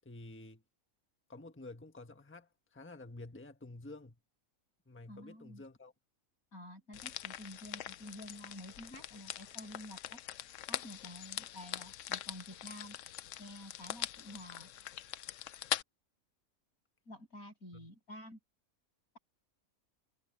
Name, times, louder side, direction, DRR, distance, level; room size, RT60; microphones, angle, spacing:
voice 1, 0.0-0.6 1.3-4.2 4.9-5.9 17.7-17.9, left 2 dB, 10° left, 1.2 m, -50 dB
voice 2, 5.1-5.6 6.5-10.2 10.7-13.0 13.4-14.7 17.1-18.4, left 1 dB, 90° left, 8.3 m, -50 dB
sound 1, 6.9-15.8, left 12 dB, 70° left, 0.9 m, -42 dB
omnidirectional pair, 1.5 m